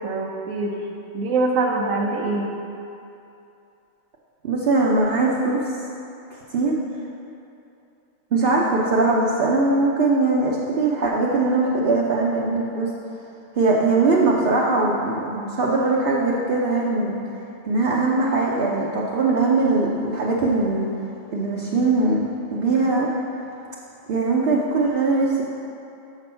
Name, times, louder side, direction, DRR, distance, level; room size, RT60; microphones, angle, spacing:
voice 1, 0.0-0.7 1.1-2.5, right 3 dB, 80° right, -2 dB, 1.2 m, -23 dB
voice 2, 4.4-5.6 6.5-6.8 8.3-12.9 13.5-17.2 17.6-20.9 21.3-22.2 22.5-23.1 24.1-25.4, right 3 dB, 55° right, -4 dB, 0.9 m, -21 dB
6.5 x 6.1 x 5.5 m, 2.8 s
omnidirectional pair, 1.3 m